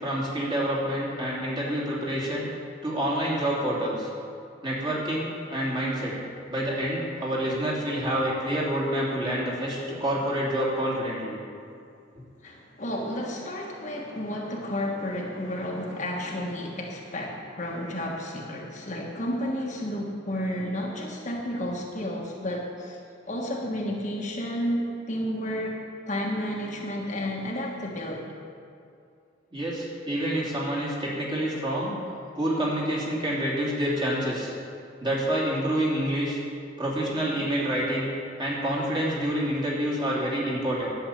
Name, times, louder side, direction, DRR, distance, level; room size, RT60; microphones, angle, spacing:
voice 1, 0.0-2.5 2.8-4.1 4.6-6.1 6.5-11.4 29.5-32.0 32.3-34.5 35.0-36.4 36.8-38.1 38.4-40.9, right 1 dB, 25° right, -6 dB, 2.9 m, -27 dB
voice 2, 12.4-23.0 23.3-25.8 26.1-28.2, equal, 40° left, -1 dB, 1.4 m, -31 dB
11.5 x 7.3 x 8.6 m, 2.4 s
head